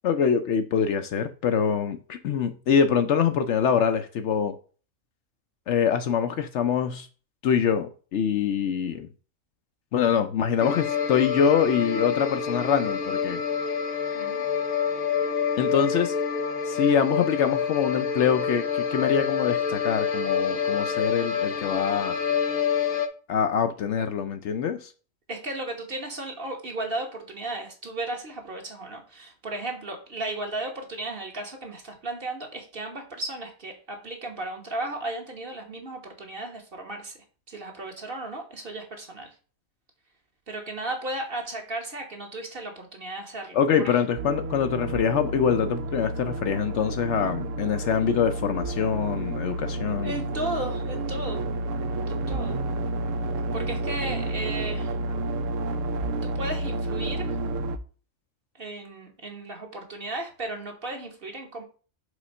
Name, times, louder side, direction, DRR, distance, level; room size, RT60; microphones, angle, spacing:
voice 1, 0.0-4.5 5.7-7.1 7.4-9.1 9.9-13.4 15.6-16.1 16.7-22.1 23.3-24.9 43.5-50.2, left 7 dB, 65° left, 8 dB, 0.8 m, -24 dB
sound 1, 10.6-23.1, left 6 dB, 85° left, 1.3 m, -27 dB
voice 2, 14.1-14.4 25.3-37.2 37.5-39.3 40.5-44.0 50.0-51.4 52.1-52.6 53.5-54.9 56.2-57.4 58.6-61.6, right 2 dB, 45° right, 2 dB, 1.5 m, -35 dB
sound 2, 44.2-57.8, right 2 dB, 75° right, 0.9 m, -30 dB
4.9 x 3.9 x 5.3 m, 0.38 s
omnidirectional pair, 1.4 m